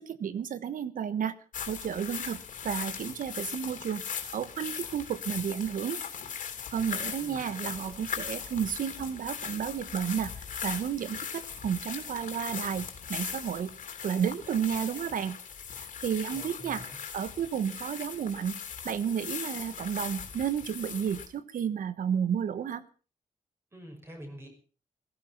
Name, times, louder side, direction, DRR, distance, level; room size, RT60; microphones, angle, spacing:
voice 1, 0.0-1.3 1.7-2.4 2.6-4.0 4.3-6.0 6.7-13.7 14.0-15.3 16.0-16.8 17.1-18.6 18.8-22.8, right 8 dB, 85° right, 15 dB, 1.3 m, -32 dB
sound 1, 1.5-21.3, left 7 dB, 75° left, 3.2 m, -39 dB
voice 2, 7.2-8.0 16.3-17.0 23.7-24.5, equal, 15° right, 3 dB, 5.8 m, -47 dB
16.5 x 15.0 x 5.8 m, 0.39 s
wide cardioid pair, 170°, 14 cm